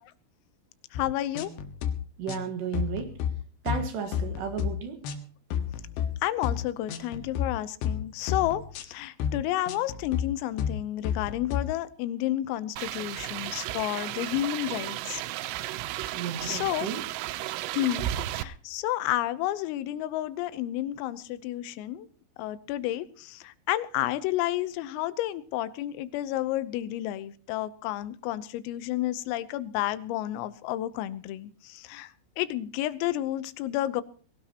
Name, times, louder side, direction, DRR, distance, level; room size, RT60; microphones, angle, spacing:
voice 1, 0.9-1.5 6.2-15.2 15.9-16.2 16.4-16.9 17.8-22.1 22.4-32.1 32.4-34.0, left 14 dB, 85° left, 15 dB, 3.5 m, -31 dB
sound 1, 1.0-1.1 1.4-1.9 2.3-2.5 2.7-3.3 3.7-3.8 4.1-4.7 5.0-5.2 5.5-6.1 6.4-6.6 6.9-7.5 7.8-8.0 8.3-8.8 9.2-9.4 9.7-10.2 10.6-10.8 11.0-11.6, left 8 dB, 65° left, 3.3 m, -30 dB
voice 2, 2.2-3.1 3.6-5.0 16.1-17.1, right 7 dB, 65° right, 7 dB, 3.4 m, -33 dB
sound 2, 12.8-18.4, right 14 dB, 80° right, 3.4 m, -34 dB
21.5 x 17.5 x 2.9 m, 0.41 s
omnidirectional pair, 6.0 m